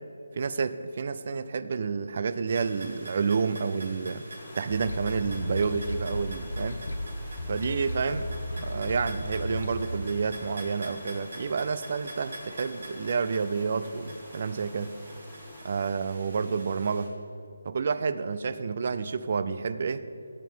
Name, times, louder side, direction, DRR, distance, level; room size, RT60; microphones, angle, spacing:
voice 1, 0.3-4.2 4.5-6.8 7.5-8.3 8.6-14.9 15.6-17.1 17.6-20.0, right 5 dB, 45° right, 13 dB, 0.5 m, -29 dB
sound 1, 2.5-17.1, right 1 dB, 65° right, 2.6 m, -46 dB
sound 2, 4.4-15.9, left 3 dB, 20° left, 0.8 m, -51 dB
sound 3, 4.7-9.8, left 1 dB, 90° left, 1.2 m, -35 dB
16.0 x 7.4 x 4.5 m, 2.9 s
figure-of-eight pair, 165°, 0 cm